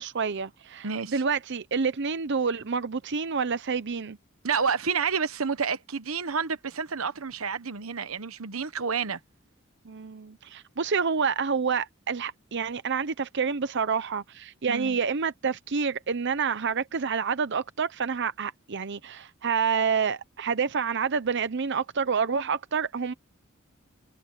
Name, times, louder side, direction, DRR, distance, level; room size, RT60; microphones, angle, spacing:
voice 1, 0.0-4.2 9.9-23.1, right 5 dB, 60° right, 0.8 m, -28 dB
voice 2, 0.8-1.2 4.4-9.2 14.7-15.0, right 5 dB, 90° right, 1.1 m, -29 dB
head